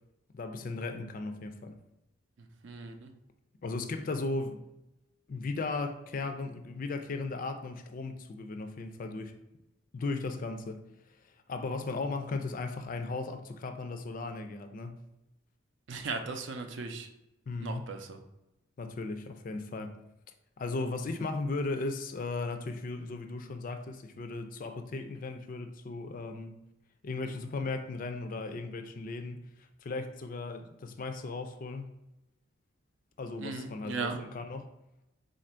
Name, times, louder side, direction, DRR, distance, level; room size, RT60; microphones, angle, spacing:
voice 1, 0.3-1.8 3.6-4.6 5.3-9.3 9.9-10.8 11.2-15.0 17.5-17.9 18.8-19.9 20.6-26.6 27.0-31.9 33.2-34.7, left 3 dB, 40° left, 0.4 m, -36 dB
voice 2, 2.6-3.1 15.9-17.1 17.6-18.2 33.4-34.2, right 4 dB, 60° right, 0.5 m, -37 dB
3.9 x 2.5 x 4.3 m
head